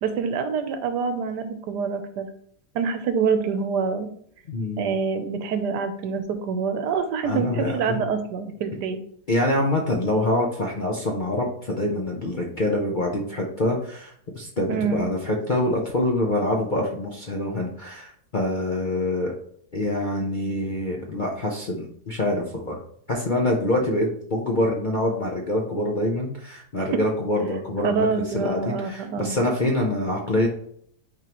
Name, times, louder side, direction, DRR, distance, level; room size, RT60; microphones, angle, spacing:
voice 1, 0.0-2.3 2.7-4.1 4.8-9.0 14.7-15.0 27.8-29.3, right 5 dB, 80° right, 8 dB, 1.3 m, -26 dB
voice 2, 4.5-4.9 7.2-8.0 9.3-19.4 19.7-22.8 23.1-30.5, left 1 dB, 50° left, -1 dB, 0.6 m, -25 dB
9.1 x 3.6 x 3.0 m, 0.65 s
omnidirectional pair, 1.8 m